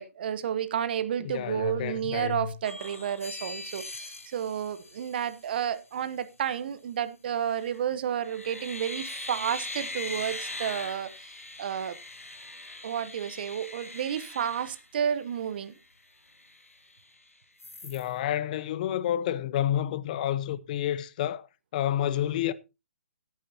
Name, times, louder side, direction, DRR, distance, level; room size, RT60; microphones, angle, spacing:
voice 1, 0.0-11.1 11.6-12.0 12.8-15.7, right 9 dB, 45° right, 1.1 m, -31 dB
voice 2, 1.2-2.5 17.8-21.5 21.7-22.5, left 11 dB, 35° left, 0.8 m, -29 dB
sound 1, 2.6-5.7 7.5-7.8 8.2-15.5 15.9-16.0 16.3-17.2 17.6-18.1, left 2 dB, 90° left, 2.2 m, -41 dB
16.5 x 9.4 x 2.9 m
figure-of-eight pair, 135°, 7 cm